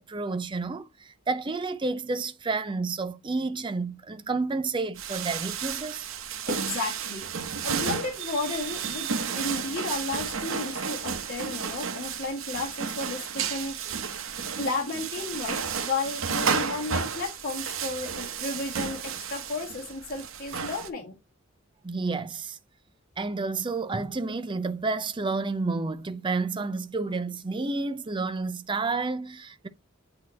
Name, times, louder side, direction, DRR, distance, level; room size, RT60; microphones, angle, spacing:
voice 1, 0.0-6.1 21.8-22.6 23.2-29.7, right 3 dB, 25° right, 0.5 m, -30 dB
sound 1, 5.0-20.9, right 6 dB, 75° right, 0.8 m, -32 dB
voice 2, 6.4-7.3 7.6-9.1 9.3-13.8 14.6-21.1, left 3 dB, 45° left, 1.7 m, -33 dB
8.5 x 2.9 x 4.1 m
head